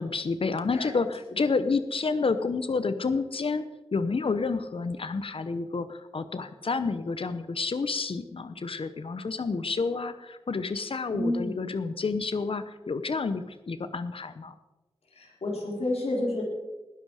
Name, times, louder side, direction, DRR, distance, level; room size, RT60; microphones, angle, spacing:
voice 1, 0.0-3.6 3.9-14.5, left 4 dB, 60° left, 11 dB, 0.8 m, -29 dB
voice 2, 11.1-11.7 15.1-16.4, left 1 dB, 80° left, -2 dB, 4.2 m, -30 dB
19.5 x 11.0 x 4.9 m, 1.1 s
cardioid pair, 55°, 10 cm